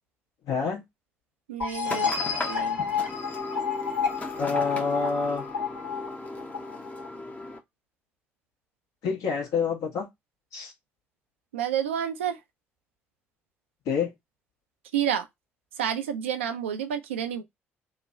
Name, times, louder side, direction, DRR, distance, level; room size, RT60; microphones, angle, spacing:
voice 1, 0.4-0.8 4.4-5.5 9.0-10.1 10.5-10.7 13.8-14.1, left 5 dB, 60° left, 1.3 m, -27 dB
voice 2, 1.5-2.8 11.5-12.4 14.9-15.3 15.8-17.4, right 9 dB, 75° right, 0.5 m, -29 dB
sound 1, 1.6-7.1, left 6 dB, 75° left, 1.4 m, -30 dB
sound 2, 1.8-7.6, left 2 dB, 20° left, 0.9 m, -37 dB
3.1 x 2.2 x 3.8 m
figure-of-eight pair, 45°, 7 cm